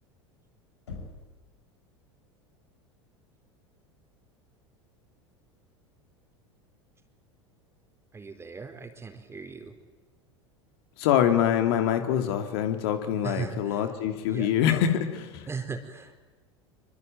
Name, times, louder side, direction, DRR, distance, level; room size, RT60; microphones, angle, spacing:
Knock, 0.9-1.5, left 4 dB, 75° left, 6.2 m, -42 dB
voice 1, 8.1-9.7 13.2-13.8 14.3-14.5 15.5-16.2, right 5 dB, 15° right, 6 dB, 4.1 m, -37 dB
voice 2, 11.0-15.5, left 10 dB, 60° left, 6 dB, 2.8 m, -25 dB
26.0 x 24.0 x 9.2 m, 1.3 s
figure-of-eight pair, 80°, 15 cm